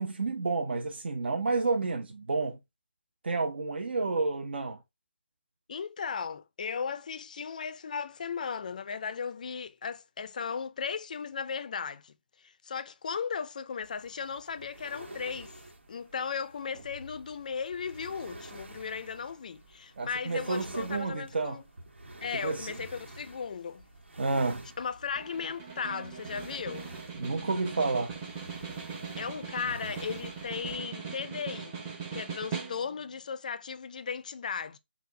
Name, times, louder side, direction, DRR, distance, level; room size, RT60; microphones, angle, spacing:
voice 1, 0.0-2.6 3.2-4.8 20.0-21.6 22.4-22.8 24.2-24.7 27.2-28.1, right 3 dB, 60° right, 0.8 m, -30 dB
voice 2, 5.7-15.5 15.9-21.6 22.2-23.8 24.8-27.0 29.1-31.8 32.1-34.8, left 6 dB, 40° left, 0.4 m, -36 dB
sound 1, 13.8-30.8, right 1 dB, 85° right, 1.4 m, -49 dB
Snare drum, 25.2-33.1, right 6 dB, 15° right, 0.8 m, -40 dB
4.1 x 2.3 x 3.9 m
figure-of-eight pair, 165°, 6 cm